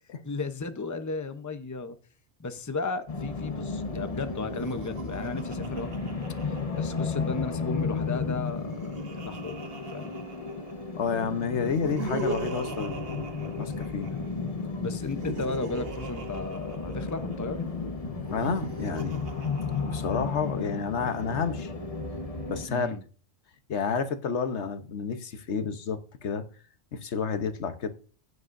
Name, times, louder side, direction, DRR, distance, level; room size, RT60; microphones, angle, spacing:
voice 1, 0.2-2.0 2.4-5.9 6.4-9.6 9.9-10.1 14.7-17.6 22.7-23.0, left 3 dB, 20° left, 0.8 m, -34 dB
sound 1, 3.1-22.7, left 4 dB, 35° left, 1.2 m, -34 dB
Laughter, 4.5-7.2 8.3-10.9 11.6-14.3 14.9-17.4 18.2-20.3, right 4 dB, 60° right, 1.4 m, -40 dB
voice 2, 11.0-14.1 18.1-19.2 19.9-21.7 22.5-22.9 23.7-26.4 26.9-27.9, left 6 dB, 80° left, 1.3 m, -30 dB
16.0 x 7.8 x 2.6 m
omnidirectional pair, 1.2 m